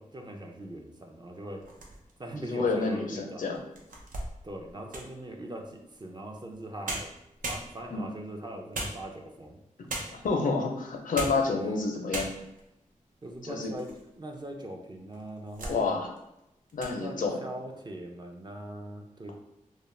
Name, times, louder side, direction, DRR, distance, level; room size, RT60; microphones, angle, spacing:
voice 1, 0.0-1.7 2.2-3.4 4.4-7.1 7.5-9.6 11.6-11.8 13.2-16.0 17.0-19.3, right 1 dB, 30° right, 2 dB, 0.5 m, -41 dB
sound 1, 1.6-2.3 2.9-3.0 3.5-5.2 6.5-6.6 6.9-8.1 8.7-9.4 9.9-10.4 11.0-11.5 11.8-11.9 12.1-12.7 13.2-14.0 14.3-14.4 15.1-15.8 16.2-16.4 16.7-17.0, right 2 dB, 80° right, 0.5 m, -38 dB
voice 2, 2.5-3.6 7.9-8.1 10.1-12.3 13.4-13.7 15.7-16.1 16.7-17.4, left 4 dB, 75° left, 1 dB, 0.5 m, -29 dB
2.4 x 2.0 x 3.1 m, 0.86 s
cardioid pair, 45°, 14 cm